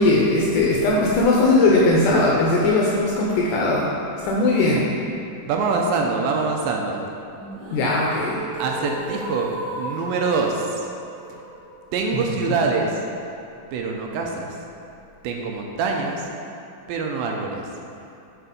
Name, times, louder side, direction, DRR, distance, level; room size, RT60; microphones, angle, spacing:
voice 1, 0.0-3.9 4.2-4.9 7.7-8.4 12.3-12.6, left 2 dB, 80° left, -3 dB, 1.9 m, -19 dB
voice 2, 5.5-7.0 8.6-10.7 11.9-13.0 13.7-14.6 15.2-16.2 16.9-17.7, right 4 dB, 80° right, 1 dB, 2.2 m, -24 dB
sound 1, 7.4-13.4, right 1 dB, 60° right, 1.1 m, -36 dB
7.0 x 4.9 x 5.1 m, 2.6 s
omnidirectional pair, 4.4 m